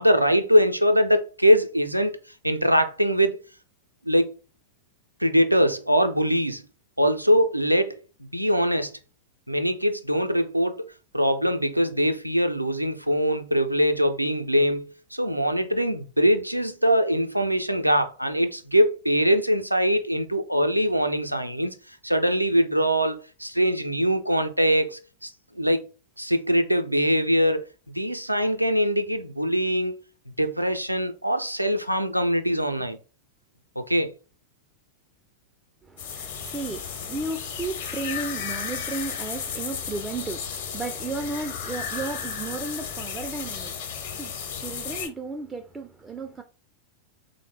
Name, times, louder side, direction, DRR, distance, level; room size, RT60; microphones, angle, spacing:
voice 1, 0.0-2.2 2.4-3.4 4.0-4.4 5.2-6.6 7.0-8.0 8.3-8.9 9.5-10.9 11.1-25.9 26.2-27.6 27.9-33.0 33.8-34.1, equal, 90° right, 0.4 m, -22 dB
voice 2, 35.8-46.4, right 3 dB, 15° right, 0.3 m, -34 dB
sound 1, 36.0-45.1, left 7 dB, 55° left, 0.9 m, -34 dB
3.6 x 2.1 x 3.2 m
figure-of-eight pair, 90°, 0 cm